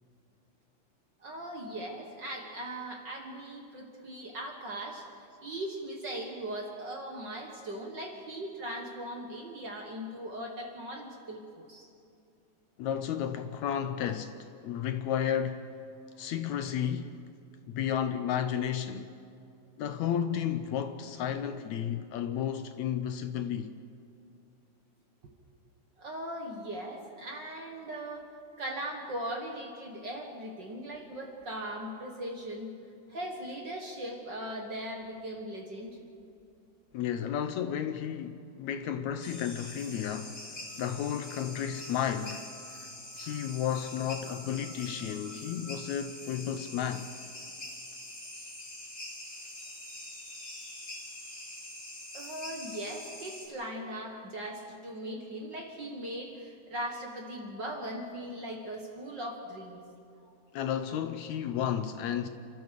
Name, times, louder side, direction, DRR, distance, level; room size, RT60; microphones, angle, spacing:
voice 1, 1.2-11.9 26.0-28.3 28.6-32.7 33.1-36.1 52.1-59.8 60.2-60.3, right 1 dB, 45° right, 1.7 m, -39 dB
voice 2, 12.8-15.7 16.2-17.2 17.7-19.1 19.8-23.8 36.9-42.5 42.7-42.9 43.2-47.1 60.5-62.3, left 9 dB, 75° left, 1.9 m, -33 dB
sound 1, 39.2-53.5, left 1 dB, 20° left, 3.0 m, -44 dB
28.5 x 13.5 x 6.7 m
omnidirectional pair, 3.6 m